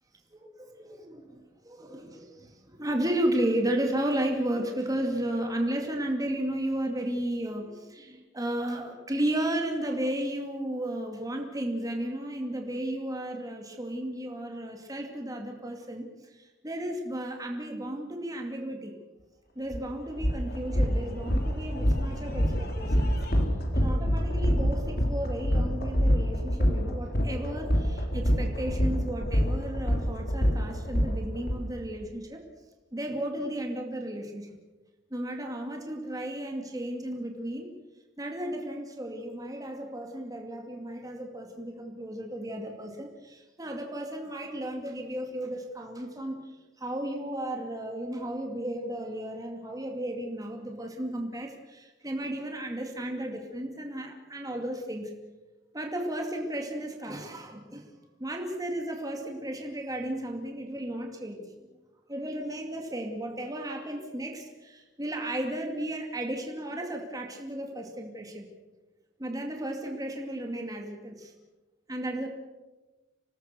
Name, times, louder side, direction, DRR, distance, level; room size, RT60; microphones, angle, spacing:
voice 1, 0.8-16.1 16.4-18.9 19.6-23.2 23.7-32.4 32.9-34.5 35.1-37.7 38.2-46.4 46.8-55.1 55.7-57.9 58.2-61.5 62.1-68.5 69.2-71.3 71.9-72.3, right 1 dB, 20° right, 2 dB, 2.4 m, -34 dB
sound 1, 19.7-19.8 20.2-31.6, equal, 55° left, 3.5 m, -26 dB
26.5 x 18.5 x 6.9 m, 1.2 s
head